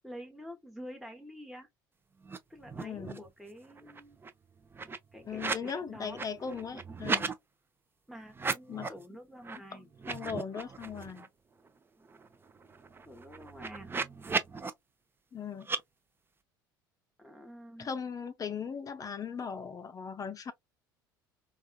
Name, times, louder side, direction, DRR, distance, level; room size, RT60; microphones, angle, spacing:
voice 1, 0.0-1.7 2.5-4.2 5.1-6.2 8.1-9.9 13.1-13.9 17.2-17.9, equal, ahead, 0.9 m, -48 dB
sound 1, 2.2-2.4 2.6-3.3 3.6-5.7 6.0-7.3 8.3-9.0 9.4-9.6 9.9-11.3 11.7-11.8 12.0-14.7 15.6-15.8, right 4 dB, 20° right, 0.5 m, -36 dB
voice 2, 2.8-3.2 5.3-7.3 8.7-8.9 10.1-11.3 15.3-15.7 17.8-20.5, left 6 dB, 30° left, 0.6 m, -38 dB
3.4 x 2.4 x 2.2 m
hypercardioid pair, 65°, 11 cm